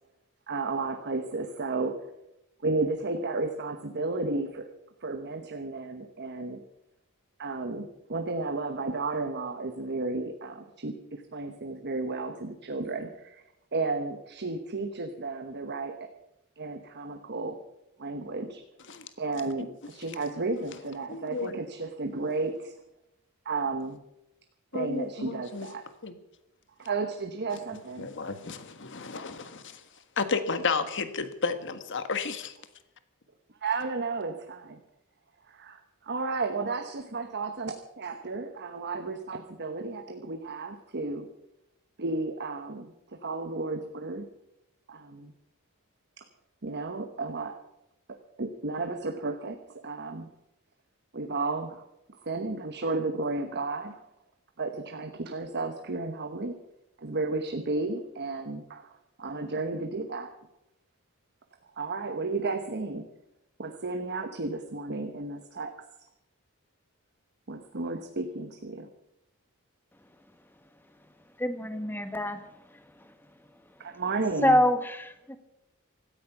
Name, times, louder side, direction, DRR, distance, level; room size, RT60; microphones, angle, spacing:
voice 1, 0.5-1.9 2.6-4.6 5.0-6.6 7.4-13.4 13.7-16.1 16.6-17.6 18.0-18.6 19.2-22.8 23.4-24.0 24.7-25.8 26.8-28.1 33.6-34.8 35.5-41.3 42.0-44.3 44.9-45.3 46.2-46.3 46.6-47.6 48.4-49.6 49.8-50.3 51.1-51.9 52.2-54.0 54.6-56.6 57.0-58.9 59.2-60.3 61.8-63.0 63.6-65.8 67.5-68.9 73.8-74.6, right 3 dB, 50° right, 6 dB, 1.1 m, -33 dB
voice 2, 21.1-21.5 24.7-25.7 26.0-26.1 28.0-29.8 30.2-32.5, left 4 dB, 60° left, 10 dB, 1.5 m, -32 dB
voice 3, 71.4-73.1 73.9-74.0 74.4-75.4, left 1 dB, 10° left, 9 dB, 1.3 m, -27 dB
17.0 x 13.5 x 6.0 m, 0.87 s
head